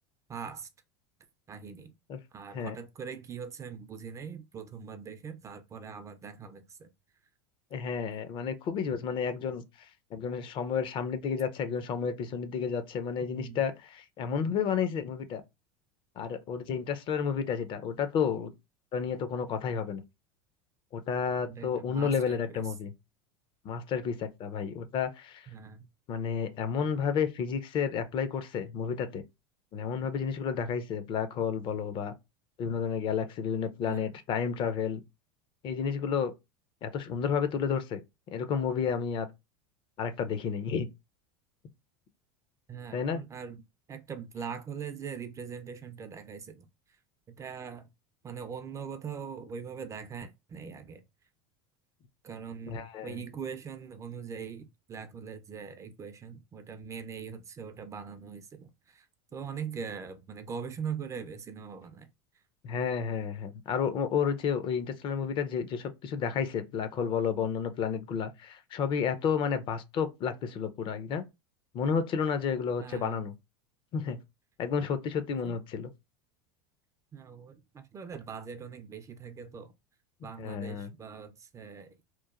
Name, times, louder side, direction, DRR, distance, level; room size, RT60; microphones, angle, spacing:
voice 1, 0.3-0.7 1.5-1.9 2.3-6.9 13.3-13.6 21.4-22.7 25.5-25.9 33.8-34.2 42.7-43.6 43.9-46.7 47.3-47.9 48.2-51.0 52.2-59.1 59.3-62.1 72.8-73.3 75.3-75.6 77.1-79.7 80.2-81.9, right 6 dB, 25° right, 0.4 m, -42 dB
voice 2, 7.7-9.6 10.1-15.4 16.2-18.5 18.9-20.0 20.9-22.9 23.6-25.5 26.1-29.2 29.7-32.1 32.6-35.0 35.6-36.3 36.8-38.0 38.3-39.3 40.0-40.9 42.9-43.2 52.7-53.2 62.6-71.2 71.7-73.3 73.9-74.2 74.6-75.9 80.4-80.9, left 6 dB, 40° left, 0.5 m, -31 dB
3.0 x 2.1 x 2.4 m
supercardioid pair, 105°, 13 cm